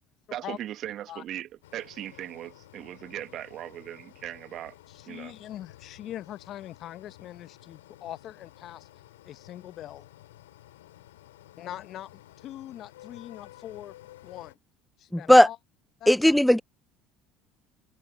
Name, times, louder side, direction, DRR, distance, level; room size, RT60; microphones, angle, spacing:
voice 1, 0.3-4.7 5.1-5.3, right 12 dB, 50° right, 1.7 m, -38 dB
sound 1, 1.6-14.5, left 15 dB, 80° left, 3.0 m, -52 dB
voice 2, 4.9-8.9 9.2-10.1 11.6-13.9 14.2-14.6 15.0-15.6 16.0-16.3, left 12 dB, 50° left, 1.1 m, -42 dB
voice 3, 16.1-16.6, left 1 dB, 5° left, 0.3 m, -16 dB
hypercardioid pair, 65°, 0 cm